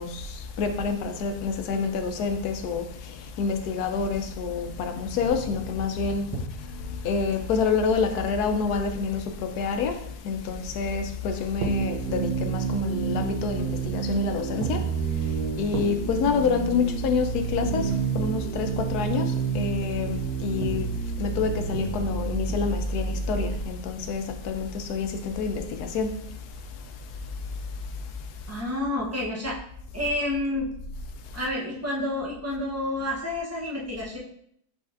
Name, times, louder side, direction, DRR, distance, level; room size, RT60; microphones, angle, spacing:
voice 1, 0.0-28.6 30.0-30.1 31.2-31.5, left 5 dB, 80° left, 1.1 m, -28 dB
sound 1, 11.6-23.6, right 6 dB, 85° right, 1.3 m, -29 dB
voice 2, 28.5-29.6 29.9-30.7 31.3-34.2, left 1 dB, 25° right, 0.3 m, -29 dB
5.1 x 4.0 x 2.5 m
omnidirectional pair, 1.7 m